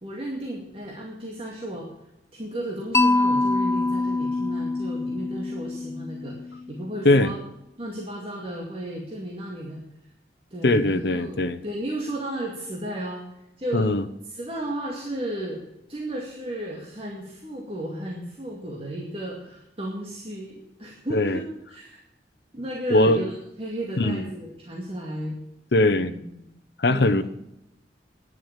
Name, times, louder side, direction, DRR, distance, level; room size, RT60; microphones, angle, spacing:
voice 1, 0.0-1.9 2.3-7.4 7.8-9.8 10.5-13.2 13.6-13.9 14.3-15.6 15.9-22.0 22.5-25.4 25.9-26.5 26.9-27.2, right 1 dB, 30° right, -2 dB, 2.2 m, -34 dB
Mallet percussion, 2.9-7.0, left 2 dB, 15° left, 0.5 m, -25 dB
voice 2, 10.6-11.6 13.7-14.0 21.1-21.4 22.9-23.2 24.0-24.2 25.7-26.1 26.8-27.2, left 2 dB, 70° left, 10 dB, 0.8 m, -20 dB
11.0 x 10.5 x 7.4 m, 0.85 s
head